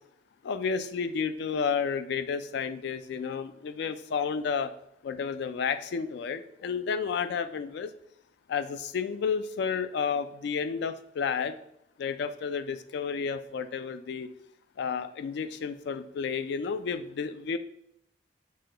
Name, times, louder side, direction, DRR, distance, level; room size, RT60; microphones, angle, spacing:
voice 1, 0.4-4.7 5.0-7.9 8.5-11.6 12.0-14.3 14.8-17.6, left 6 dB, 65° left, 11 dB, 0.3 m, -31 dB
6.2 x 2.2 x 3.7 m, 0.77 s
head